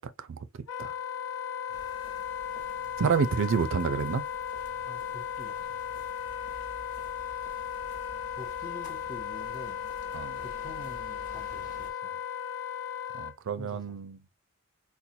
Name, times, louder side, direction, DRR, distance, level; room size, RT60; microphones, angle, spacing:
Wind instrument woodwind instrument, 0.7-13.3, left 9 dB, 65° left, 0.5 m, -36 dB
sound 1, 1.7-11.9, left 2 dB, 40° left, 1.2 m, -51 dB
voice 1, 3.0-4.2 10.1-10.4 13.1-14.2, right 6 dB, 60° right, 0.4 m, -28 dB
voice 2, 4.8-5.7 8.4-9.8 10.4-12.2 13.6-14.0, left 2 dB, 20° left, 0.7 m, -46 dB
4.1 x 2.2 x 2.6 m
head